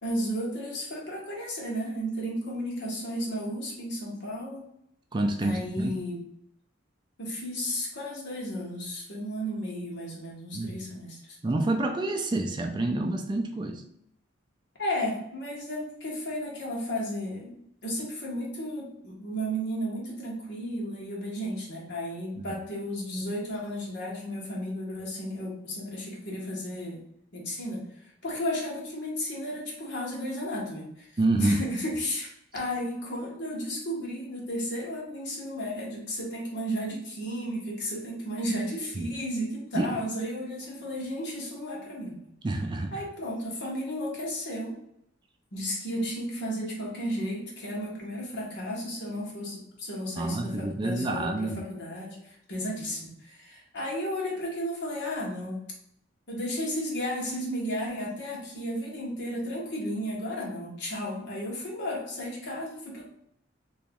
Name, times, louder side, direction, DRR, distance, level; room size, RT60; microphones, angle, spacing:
voice 1, 0.0-4.7 5.4-6.2 7.2-11.4 14.8-17.6 17.8-27.0 27.3-27.8 28.2-31.1 31.3-42.1 42.9-44.7 45.5-55.6 56.3-63.0, equal, 60° left, -3 dB, 1.3 m, -33 dB
voice 2, 5.1-5.9 10.5-10.8 11.4-13.8 22.4-22.5 31.2-31.6 39.0-39.1 39.8-39.9 42.4-43.0 50.2-51.6, right 2 dB, 25° right, 4 dB, 0.3 m, -28 dB
2.9 x 2.9 x 3.6 m, 0.74 s
head